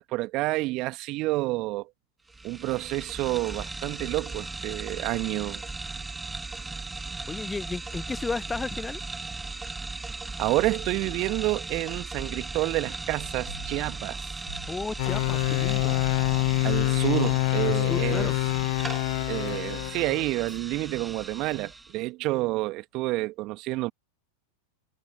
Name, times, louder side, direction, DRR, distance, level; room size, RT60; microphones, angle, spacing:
voice 1, 0.0-1.9 2.4-5.6 10.4-14.3 16.6-18.4 19.3-23.9, right 20 dB, 40° right, 2.0 m, -29 dB
sound 1, 2.3-22.0, right 3 dB, 10° right, 2.0 m, -37 dB
voice 2, 7.3-9.0 14.7-16.0 17.6-18.4, left 4 dB, 10° left, 0.5 m, -33 dB
sound 2, 13.5-14.2 14.5-15.1 15.5-16.0 16.5-16.6 17.5-17.6 18.5-18.6 19.5-19.6 20.5-20.6, left 1 dB, 85° left, 1.9 m, -47 dB
sound 3, 15.0-20.2, left 26 dB, 50° left, 1.1 m, -26 dB
figure-of-eight pair, 90°, 0 cm